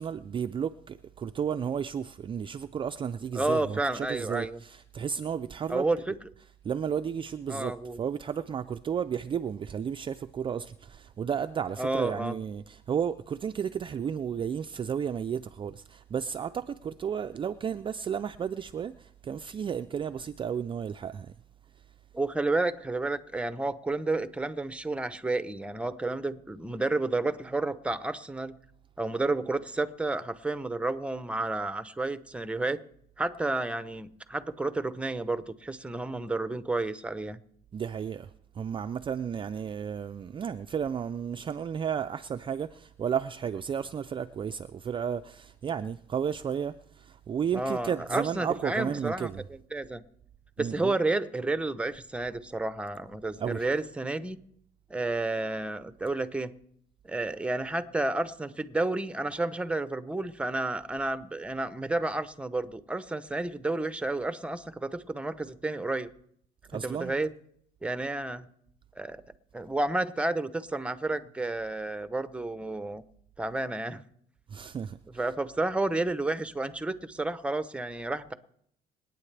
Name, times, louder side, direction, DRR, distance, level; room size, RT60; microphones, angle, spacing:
voice 1, 0.0-5.9 6.6-21.3 37.7-49.4 50.6-50.9 53.4-53.6 66.7-67.1 74.5-75.0, right 7 dB, 30° right, 0.4 m, -33 dB
voice 2, 3.3-4.6 5.7-6.1 7.5-8.0 11.8-12.4 22.1-28.5 29.0-32.8 33.2-37.4 47.5-49.3 49.7-50.0 50.6-54.4 54.9-56.5 57.0-66.1 66.7-67.3 67.8-68.5 69.0-69.2 69.5-73.0 73.4-74.0 75.2-78.3, right 2 dB, 5° right, 0.7 m, -31 dB
26.5 x 9.2 x 3.3 m
cardioid pair, 110°, 17 cm